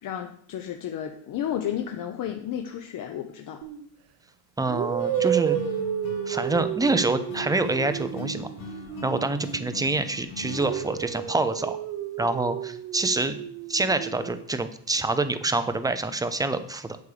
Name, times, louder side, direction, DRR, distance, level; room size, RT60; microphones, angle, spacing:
voice 1, 0.0-3.6, left 10 dB, 40° left, 5 dB, 0.8 m, -32 dB
sound 1, 3.6-3.9 4.7-10.0 10.4-14.4, right 10 dB, 85° right, 1.2 m, -32 dB
voice 2, 4.6-5.6 6.3-8.5 9.0-11.8 12.2-13.4 13.7-17.0, right 2 dB, 10° right, 10 dB, 0.5 m, -26 dB
sound 2, 5.0-11.3, left 5 dB, 80° left, 2.9 m, -42 dB
8.6 x 8.2 x 5.0 m, 0.64 s
cardioid pair, 145°, 48 cm